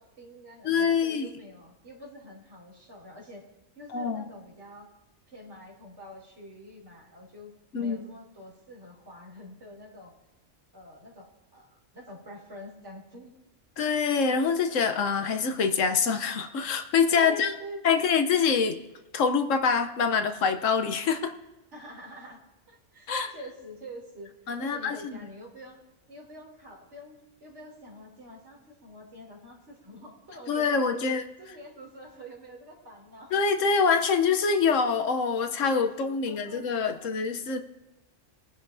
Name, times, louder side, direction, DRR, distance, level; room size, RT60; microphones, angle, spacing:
voice 1, 0.0-3.5 3.7-4.9 5.3-10.1 10.7-13.4 17.1-18.1 21.7-24.3 24.6-25.8 26.1-31.1 31.4-33.3 35.6-37.3, equal, 65° right, -2 dB, 3.4 m, -46 dB
voice 2, 0.6-1.3 3.9-4.3 7.7-8.0 13.8-17.5 17.8-18.8 19.1-21.3 23.1-23.3 24.5-25.0 30.5-31.2 33.3-37.6, left 5 dB, 80° left, 7 dB, 1.2 m, -25 dB
21.5 x 10.5 x 2.7 m, 0.97 s
omnidirectional pair, 1.3 m